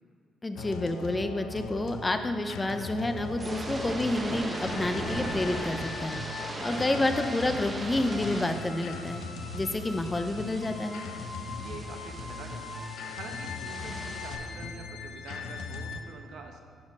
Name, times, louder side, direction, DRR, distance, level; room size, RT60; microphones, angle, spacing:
voice 1, 0.4-6.2 6.6-9.2 9.5-11.0, left 2 dB, 20° left, 7 dB, 0.6 m, -29 dB
sound 1, 0.6-16.0, left 4 dB, 90° left, 0.6 m, -39 dB
sound 2, 3.2-14.4, right 2 dB, 25° right, 1.3 m, -39 dB
voice 2, 6.7-7.1 11.5-16.6, right 4 dB, 75° right, 4 dB, 1.0 m, -45 dB
10.5 x 5.1 x 5.2 m, 2.1 s
cardioid pair, 90°, 0 cm